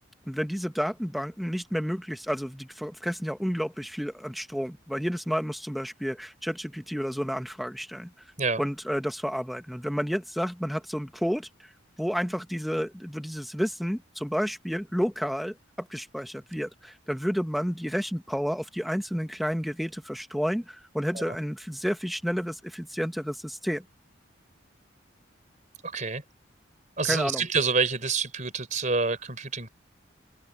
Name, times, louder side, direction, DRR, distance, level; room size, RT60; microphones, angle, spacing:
voice 1, 0.3-8.1 8.6-11.7 12.0-23.8 27.0-27.4, equal, ahead, 1.1 m, -31 dB
voice 2, 25.8-26.2 27.0-29.7, right 4 dB, 40° right, 4.1 m, -27 dB
open air
head